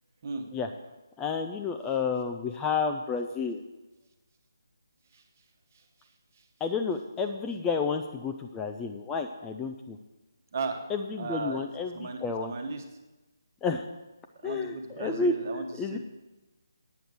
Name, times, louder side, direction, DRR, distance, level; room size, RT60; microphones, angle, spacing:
voice 1, 0.2-0.5 5.1-5.2 5.7-5.8 6.3-6.5 10.5-10.8 11.2-11.7 11.9-12.8 14.4-16.0, right 4 dB, 40° right, 5 dB, 1.2 m, -36 dB
voice 2, 1.2-3.6 6.6-10.0 10.9-11.9 12.2-12.5 13.6-13.8 14.4-16.0, left 5 dB, 10° left, 4 dB, 0.3 m, -30 dB
9.1 x 7.8 x 6.3 m, 1.1 s
figure-of-eight pair, 150°, 2 cm